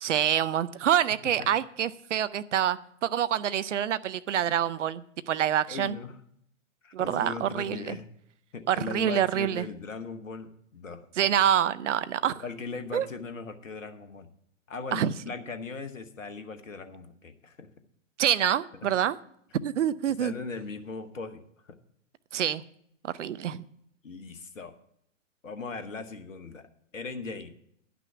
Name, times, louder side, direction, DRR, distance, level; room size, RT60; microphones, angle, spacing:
voice 1, 0.0-6.0 6.9-8.0 8.7-9.6 11.2-12.4 12.9-13.1 14.9-15.1 18.2-19.2 19.6-20.3 22.3-22.6 23.0-23.6, right 10 dB, 65° right, 16 dB, 0.6 m, -26 dB
voice 2, 5.7-6.2 6.8-8.1 8.5-11.0 12.4-14.3 14.7-17.7 20.2-21.8 24.0-24.7 25.4-26.6 26.9-27.5, left 4 dB, 80° left, 8 dB, 1.0 m, -39 dB
10.5 x 6.1 x 6.9 m, 0.71 s
figure-of-eight pair, 115°, 38 cm